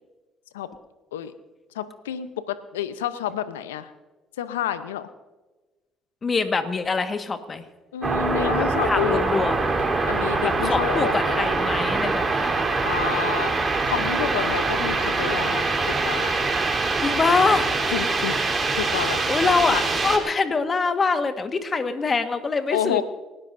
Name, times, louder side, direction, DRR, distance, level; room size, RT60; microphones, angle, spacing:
voice 1, 1.7-3.9 4.4-5.1 7.9-9.2 10.1-11.5 12.8-16.3 17.3-17.4 17.9-18.4 18.7-19.8 22.7-23.0, left 10 dB, 90° left, 13 dB, 0.8 m, -29 dB
voice 2, 6.2-7.6 8.8-9.6 10.4-12.5 17.0-17.7 19.3-23.0, left 4 dB, 35° left, 8 dB, 1.6 m, -24 dB
sound 1, 8.0-20.2, right 3 dB, 30° right, 3.6 m, -24 dB
30.0 x 13.0 x 2.7 m, 1.2 s
hypercardioid pair, 55°, 0 cm